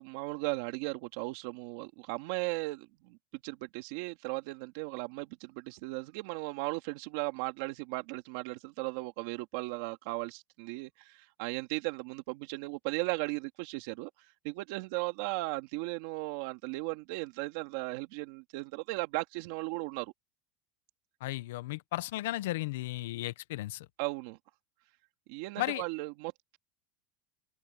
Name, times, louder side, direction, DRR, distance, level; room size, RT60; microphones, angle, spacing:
voice 1, 0.0-3.2 3.4-14.1 14.4-20.1 24.0-24.4 25.3-26.6, right 23 dB, 65° right, 2.3 m, -36 dB
voice 2, 21.2-23.9 25.6-25.8, left 17 dB, 80° left, 0.8 m, -35 dB
supercardioid pair, 140°, 0 cm